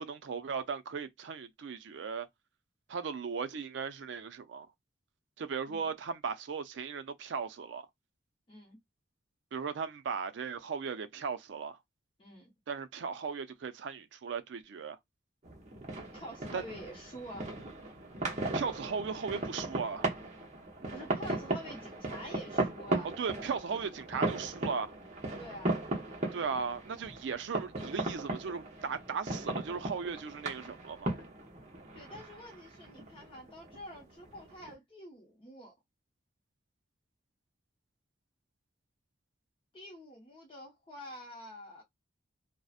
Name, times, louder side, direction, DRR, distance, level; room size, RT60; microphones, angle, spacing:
voice 1, 0.0-2.3 2.9-4.7 5.4-7.8 9.5-11.8 12.7-15.0 16.5-16.6 18.5-20.1 23.2-24.9 26.3-31.1, right 5 dB, 70° right, 0.4 m, -37 dB
voice 2, 8.5-8.8 12.2-12.5 16.1-17.6 20.9-23.1 25.4-25.8 31.9-35.7 39.7-41.8, equal, 25° left, 0.6 m, -47 dB
sound 1, 15.4-34.7, right 2 dB, 35° right, 0.7 m, -37 dB
2.7 x 2.0 x 2.3 m
head